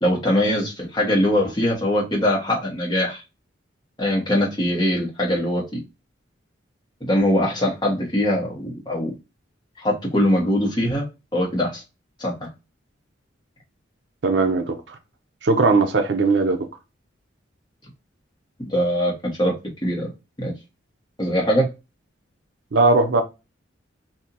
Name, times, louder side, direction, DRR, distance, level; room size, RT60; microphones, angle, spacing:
voice 1, 0.0-3.2 4.0-5.8 7.0-9.1 9.8-11.0 11.3-11.8 12.2-12.5 18.7-19.5 19.8-20.1 20.4-20.5 21.2-21.7, equal, 20° left, 1.1 m, -22 dB
voice 2, 14.2-14.8 15.4-16.7 22.7-23.2, right 3 dB, 65° right, 0.6 m, -18 dB
2.8 x 2.6 x 3.8 m
head